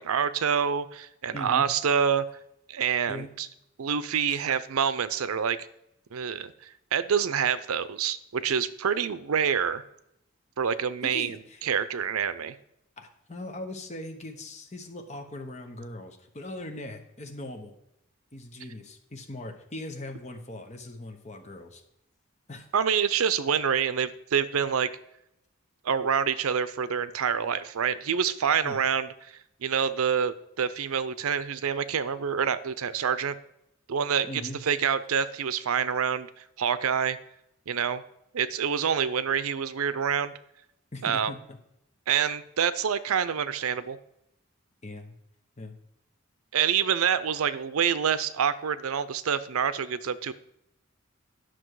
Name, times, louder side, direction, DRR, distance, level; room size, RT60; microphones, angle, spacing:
voice 1, 0.0-2.3 2.7-3.5 3.8-5.6 6.1-9.8 10.6-11.4 11.6-12.6 22.7-24.9 25.8-33.4 33.9-37.2 37.7-38.0 38.3-40.3 41.0-41.3 42.1-44.0 46.5-50.3, right 7 dB, 85° right, 15 dB, 0.5 m, -27 dB
voice 2, 1.3-1.7 3.1-3.3 4.3-4.4 11.0-11.6 13.0-17.7 18.3-21.8 22.5-22.7 28.6-28.8 34.3-34.6 40.9-41.6 44.8-45.2 45.6-45.7, left 1 dB, 30° left, 5 dB, 1.0 m, -40 dB
10.0 x 6.1 x 4.7 m, 0.81 s
head